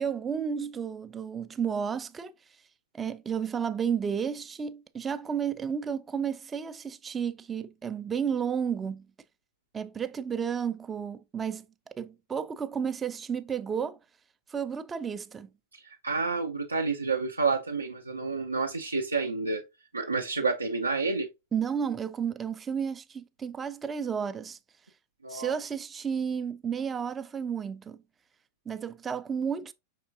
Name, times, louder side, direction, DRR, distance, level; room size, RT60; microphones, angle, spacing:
voice 1, 0.0-2.3 2.9-9.1 9.7-14.0 14.5-15.5 21.5-24.6 25.3-28.0 28.7-29.7, right 7 dB, 20° right, 0.3 m, -32 dB
voice 2, 15.7-19.6 19.9-21.3 25.2-25.6, right 4 dB, 80° right, 0.4 m, -29 dB
5.7 x 3.6 x 2.4 m
figure-of-eight pair, 90°, 0 cm